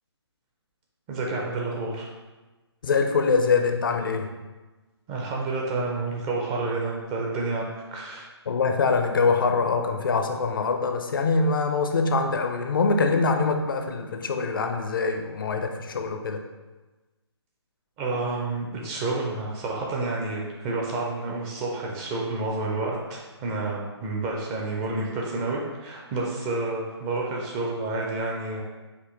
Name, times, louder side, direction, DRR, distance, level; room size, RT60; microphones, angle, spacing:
voice 1, 1.1-2.1 5.1-8.3 18.0-28.6, right 3 dB, 15° right, -2 dB, 0.4 m, -29 dB
voice 2, 2.8-4.3 8.5-16.4, left 4 dB, 50° left, 5 dB, 0.4 m, -24 dB
5.1 x 2.5 x 3.6 m, 1.2 s
figure-of-eight pair, 140°, 15 cm